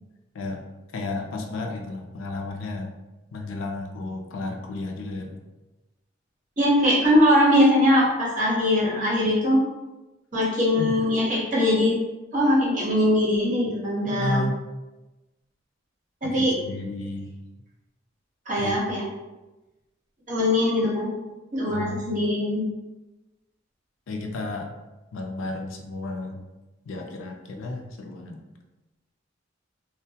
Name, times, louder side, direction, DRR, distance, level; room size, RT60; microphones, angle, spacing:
voice 1, 0.9-2.9 3.3-5.4 10.8-10.9 14.1-14.6 16.2-17.3 18.6-18.8 21.7-22.0 24.1-24.7 25.1-26.4 26.8-28.4, left 2 dB, 90° left, 3 dB, 0.4 m, -32 dB
voice 2, 6.6-9.6 10.3-12.0 12.3-14.4 16.2-16.5 18.5-19.0 20.3-21.1 21.5-22.6, left 1 dB, 40° right, -6 dB, 0.8 m, -21 dB
2.1 x 2.1 x 2.7 m, 1.1 s
head